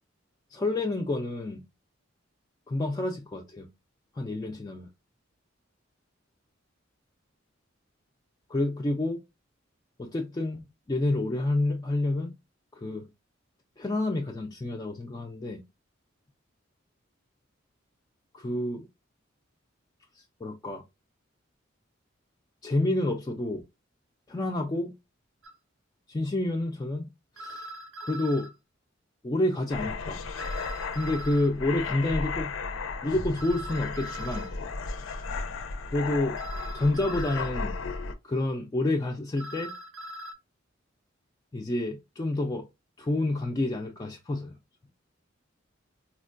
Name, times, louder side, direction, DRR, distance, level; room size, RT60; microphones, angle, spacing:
voice 1, 0.5-1.6 2.7-3.7 4.2-4.9 8.5-9.2 10.0-12.4 12.7-13.1 13.8-15.6 18.3-18.9 20.2-20.8 22.6-23.6 24.3-24.9 26.1-27.1 27.4-27.7 28.0-28.5 29.2-30.2 30.9-32.5 33.0-34.5 35.9-36.4 36.7-37.8 38.2-39.7 41.5-42.7 43.0-44.6, left 2 dB, 20° left, 0.3 m, -29 dB
sound 1, 25.4-25.5 27.4-28.5 30.4-31.5 33.4-34.5 36.4-37.5 39.4-40.3, right 1 dB, 75° right, 0.5 m, -41 dB
sound 2, 29.7-38.1, left 4 dB, 85° left, 0.4 m, -34 dB
4.4 x 2.1 x 2.5 m
head